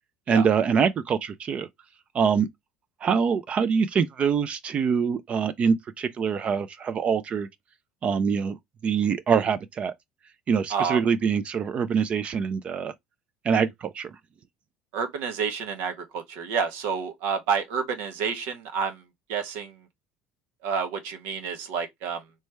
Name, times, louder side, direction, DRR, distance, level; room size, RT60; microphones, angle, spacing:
voice 1, 0.3-1.7 2.1-2.5 3.0-7.5 8.0-8.6 8.8-9.9 10.5-12.9 13.4-14.2, right 6 dB, 35° right, 0.4 m, -24 dB
voice 2, 10.7-11.0 14.9-19.0 19.3-19.8 20.6-22.2, right 6 dB, 85° right, 1.0 m, -29 dB
3.3 x 3.2 x 3.2 m
cardioid pair, 125°, 3 cm